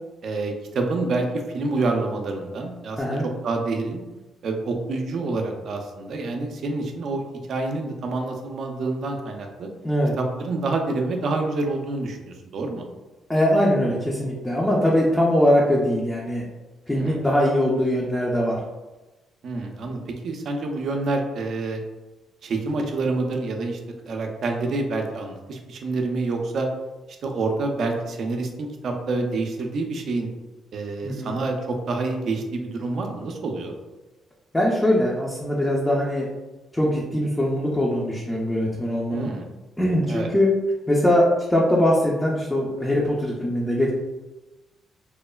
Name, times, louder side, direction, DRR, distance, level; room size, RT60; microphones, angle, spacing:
voice 1, 0.2-1.2 1.5-3.2 3.4-4.0 4.4-7.2 7.5-9.7 10.2-12.8 16.9-17.2 19.4-21.8 22.4-23.8 24.1-26.7 27.2-30.3 30.7-33.8 39.1-39.4 40.1-40.3, right 3 dB, 60° right, 3 dB, 0.4 m, -27 dB
voice 2, 13.3-16.4 16.9-18.6 31.0-31.4 34.5-36.3 36.7-39.3 39.8-40.5 40.9-43.9, left 1 dB, 10° left, -4 dB, 0.5 m, -21 dB
3.1 x 2.0 x 2.2 m, 1.1 s
cardioid pair, 90°, 0 cm